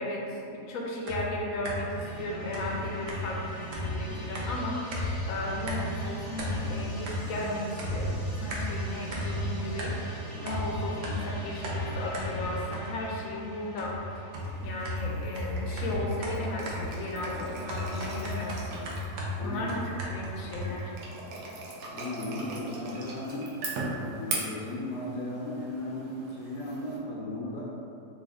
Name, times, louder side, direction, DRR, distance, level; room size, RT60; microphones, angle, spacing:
voice 1, 0.0-4.8 5.3-9.9 10.4-14.2 14.6-19.0 19.4-20.9, left 1 dB, 70° left, -2 dB, 0.9 m, -35 dB
sound 1, 1.1-2.0 2.5-5.3 5.7-6.1 6.4-7.5 7.8-10.1 10.5-13.2 13.8-20.7, left 1 dB, 85° right, 1.2 m, -34 dB
sound 2, 1.9-15.7, right 2 dB, 20° right, 0.3 m, -43 dB
sound 3, 14.3-27.0, right 2 dB, 65° right, 0.7 m, -40 dB
voice 2, 19.4-19.8 21.9-23.5 24.0-27.6, left 1 dB, 90° left, -5 dB, 1.2 m, -36 dB
3.3 x 2.4 x 3.4 m, 2.6 s
omnidirectional pair, 1.7 m